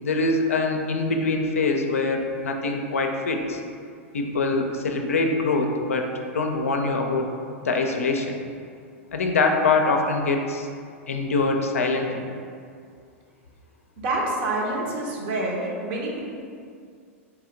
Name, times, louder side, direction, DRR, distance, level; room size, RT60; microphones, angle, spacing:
voice 1, 0.0-3.6 4.1-7.3 7.6-8.4 9.1-10.7 11.1-12.3, left 3 dB, 75° left, 3 dB, 0.4 m, -24 dB
voice 2, 14.0-16.2, right 2 dB, 50° right, -2 dB, 0.9 m, -27 dB
3.5 x 3.0 x 3.8 m, 2.3 s
figure-of-eight pair, 95°, 8 cm